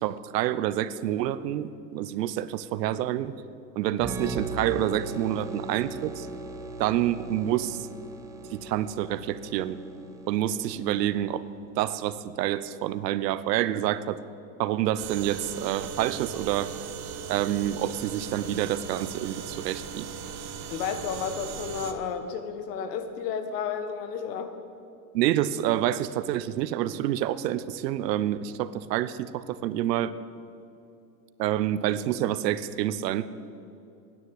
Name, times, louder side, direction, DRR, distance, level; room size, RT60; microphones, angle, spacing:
voice 1, 0.0-3.4 3.8-6.3 6.8-7.9 8.5-9.8 10.3-11.5 11.8-14.2 14.6-16.7 17.3-20.1 25.1-30.1 31.4-33.3, right 12 dB, 85° right, 15 dB, 0.8 m, -28 dB
sound 1, 4.0-11.5, right 3 dB, 5° right, 0.4 m, -38 dB
sound 2, 15.0-21.9, right 7 dB, 70° right, 1.4 m, -38 dB
voice 2, 20.7-24.5, left 6 dB, 75° left, 8 dB, 1.5 m, -32 dB
9.9 x 9.5 x 9.1 m, 2.6 s
supercardioid pair, 145°, 48 cm